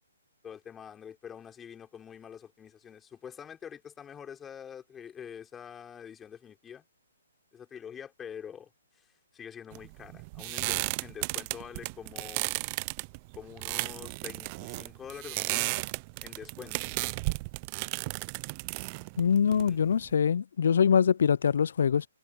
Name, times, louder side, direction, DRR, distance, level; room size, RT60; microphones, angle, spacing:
voice 1, 0.4-6.8 7.5-8.7 8.9-9.1 9.3-12.5 13.3-15.8 16.2-16.8 19.6-19.8, left 8 dB, 15° left, 5.5 m, -45 dB
sound 1, 9.7-20.1, right 27 dB, 30° right, 0.4 m, -34 dB
voice 2, 19.2-22.1, left 7 dB, 65° left, 0.3 m, -24 dB
hypercardioid pair, 145°, 0 cm